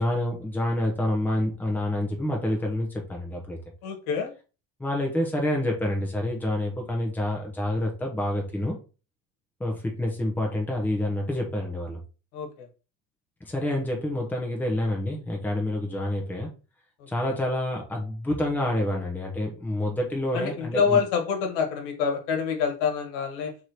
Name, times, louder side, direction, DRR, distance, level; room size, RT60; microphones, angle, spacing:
voice 1, 0.0-3.6 4.8-8.8 9.6-12.0 13.4-16.5 17.1-21.0, left 1 dB, 5° left, 0 dB, 1.0 m, -28 dB
voice 2, 3.8-4.3 12.3-12.5 20.3-23.5, left 6 dB, 70° left, 4 dB, 1.5 m, -26 dB
3.7 x 3.2 x 4.3 m, 0.34 s
cardioid pair, 140°, 37 cm